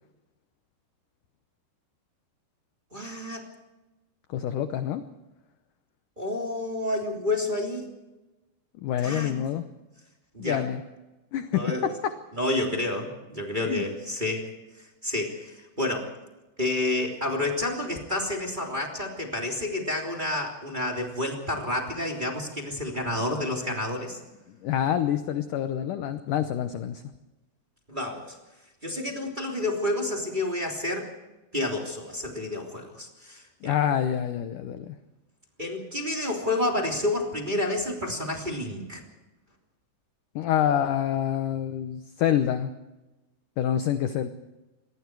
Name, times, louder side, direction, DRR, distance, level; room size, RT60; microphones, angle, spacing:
voice 1, 2.9-3.5 6.2-7.9 9.0-9.4 10.3-10.6 11.5-11.9 12.3-14.5 15.0-16.1 16.6-24.2 27.9-28.3 28.8-31.1 31.5-33.8 35.6-39.0, left 2 dB, 15° right, 0 dB, 2.6 m, -29 dB
voice 2, 4.3-5.0 8.8-9.6 10.4-10.8 11.3-11.6 13.7-13.8 23.3-23.4 24.5-27.0 33.6-35.0 40.4-42.7 43.6-44.3, left 10 dB, 80° left, 9 dB, 1.8 m, -27 dB
27.5 x 21.5 x 4.7 m, 1.1 s
omnidirectional pair, 5.0 m